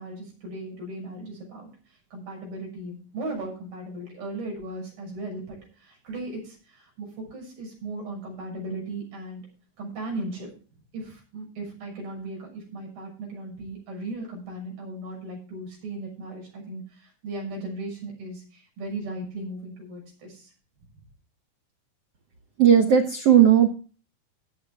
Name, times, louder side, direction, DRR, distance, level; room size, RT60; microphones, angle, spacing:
voice 1, 0.0-1.7 2.1-9.4 9.8-10.5 10.9-20.5, right 2 dB, 65° right, -1 dB, 8.3 m, -37 dB
voice 2, 22.6-23.7, right 9 dB, 85° right, 5 dB, 1.3 m, -16 dB
16.5 x 6.9 x 4.9 m, 0.38 s
omnidirectional pair, 4.4 m